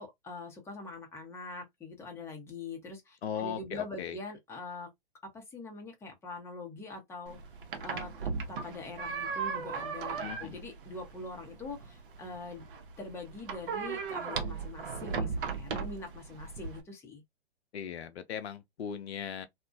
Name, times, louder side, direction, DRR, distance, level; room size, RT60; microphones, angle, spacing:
voice 1, 0.0-4.9 5.3-7.4 7.8-8.1 8.5-12.6 13.0-17.2, left 3 dB, 10° left, 0.7 m, -43 dB
voice 2, 3.2-4.2 10.2-10.6 17.7-19.5, left 8 dB, 80° left, 0.5 m, -38 dB
sound 1, 7.3-16.8, right 5 dB, 55° right, 0.7 m, -37 dB
2.3 x 2.1 x 2.5 m
figure-of-eight pair, 115°, 32 cm